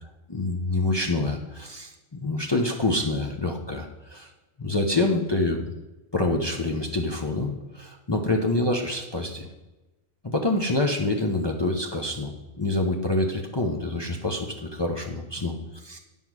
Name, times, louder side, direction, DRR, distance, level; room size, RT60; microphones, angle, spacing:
voice 1, 0.3-4.3 4.6-5.6 6.1-9.5 10.2-15.5 15.8-16.0, left 2 dB, 25° left, 1 dB, 0.7 m, -26 dB
9.9 x 5.5 x 6.1 m, 1.1 s
omnidirectional pair, 1.2 m